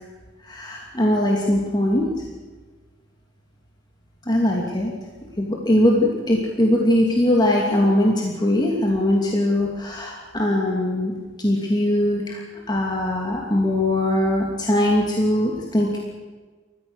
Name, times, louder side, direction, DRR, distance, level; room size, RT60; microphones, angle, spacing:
voice 1, 0.4-2.1 4.3-4.9 5.4-11.1 11.4-12.4 12.7-16.1, left 1 dB, 20° left, -1 dB, 2.7 m, -21 dB
29.5 x 15.0 x 6.5 m, 1.3 s
head